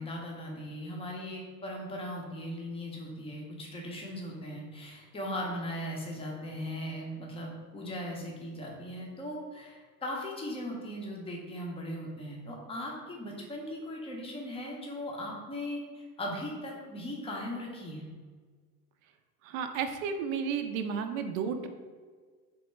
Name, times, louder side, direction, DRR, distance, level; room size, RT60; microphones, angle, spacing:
voice 1, 0.0-18.1, left 1 dB, 10° left, -1 dB, 0.6 m, -38 dB
voice 2, 19.4-21.7, right 6 dB, 60° right, 7 dB, 0.5 m, -32 dB
3.3 x 2.2 x 3.0 m, 1.5 s
hypercardioid pair, 90°, 48 cm